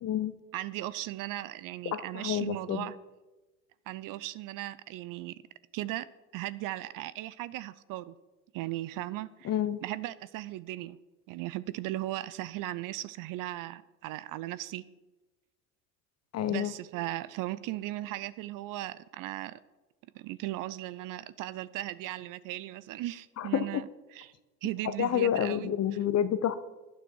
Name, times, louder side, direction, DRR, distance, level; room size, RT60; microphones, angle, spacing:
voice 1, 0.0-0.3 1.9-2.9 9.4-9.8 16.3-16.7 23.4-23.7 25.0-26.7, left 10 dB, 40° left, 13 dB, 1.0 m, -29 dB
voice 2, 0.5-2.9 3.9-5.4 5.7-6.1 6.3-8.1 8.5-9.5 9.8-11.0 11.3-14.8 16.5-19.6 20.1-23.9 24.1-24.3 24.6-25.7, right 16 dB, 50° right, 18 dB, 0.7 m, -37 dB
15.5 x 9.3 x 4.6 m, 1.1 s
hypercardioid pair, 75°, 41 cm